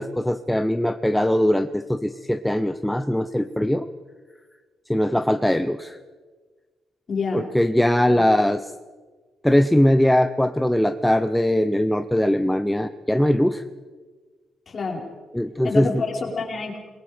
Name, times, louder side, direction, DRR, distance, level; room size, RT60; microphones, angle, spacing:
voice 1, 0.0-3.9 4.9-6.0 7.3-8.7 9.4-13.6 15.3-15.9, left 1 dB, 5° left, 8 dB, 0.7 m, -21 dB
voice 2, 7.1-7.5 8.1-8.2 14.7-15.0 15.6-16.8, left 4 dB, 30° left, 0 dB, 4.8 m, -27 dB
28.5 x 22.0 x 5.1 m, 1.4 s
cardioid pair, 170°, 0 cm